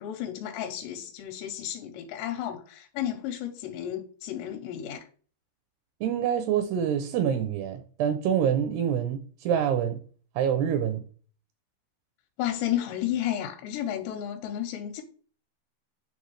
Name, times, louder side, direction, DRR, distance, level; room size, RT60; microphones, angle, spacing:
voice 1, 0.0-5.1 12.4-15.0, left 11 dB, 85° left, 2.9 m, -32 dB
voice 2, 6.0-10.0 10.4-11.0, right 9 dB, 80° right, 2.4 m, -26 dB
9.4 x 3.4 x 3.2 m
omnidirectional pair, 5.1 m